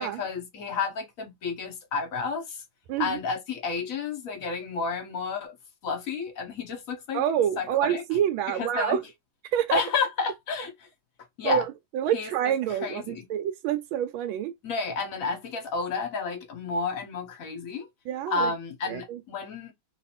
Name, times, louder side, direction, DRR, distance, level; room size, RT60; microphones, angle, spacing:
voice 1, 0.0-2.6 3.0-5.6 5.8-7.2 7.6-8.0 8.5-9.0 9.7-10.9 11.4-11.6 12.1-12.3 12.8-13.2 14.6-17.9 18.3-19.7, left 4 dB, 55° left, 1.1 m, -31 dB
voice 2, 7.1-9.0 9.5-9.8 11.4-11.7 11.9-14.5 18.1-18.5 18.9-19.2, right 10 dB, 85° right, 1.4 m, -27 dB
3.1 x 2.5 x 4.2 m
omnidirectional pair, 2.2 m